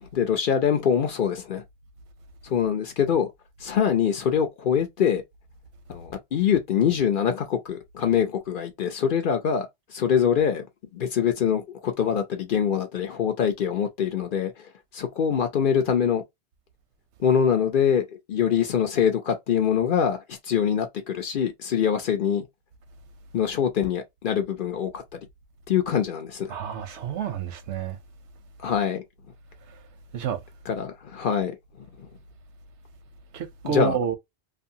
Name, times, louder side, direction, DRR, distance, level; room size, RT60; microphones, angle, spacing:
voice 1, 0.0-1.6 2.4-3.3 3.6-5.2 5.9-10.7 10.9-16.2 17.2-22.5 23.3-25.2 25.7-26.6 28.6-29.0 30.7-32.1 33.6-34.0, left 8 dB, 55° left, 0.7 m, -24 dB
voice 2, 26.5-28.0 30.1-30.4 33.3-34.1, right 7 dB, 85° right, 1.0 m, -29 dB
2.6 x 2.6 x 2.7 m
omnidirectional pair, 1.2 m